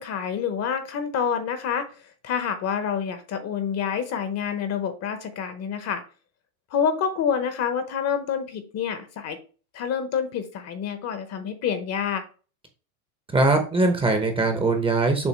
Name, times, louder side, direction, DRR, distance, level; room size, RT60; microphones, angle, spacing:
voice 1, 0.0-1.9 2.2-6.0 6.7-9.4 9.7-12.2, left 7 dB, 35° left, 9 dB, 1.0 m, -27 dB
voice 2, 13.3-15.3, right 2 dB, 10° right, 5 dB, 0.9 m, -21 dB
7.2 x 2.6 x 5.3 m, 0.36 s
supercardioid pair, 140°, 44 cm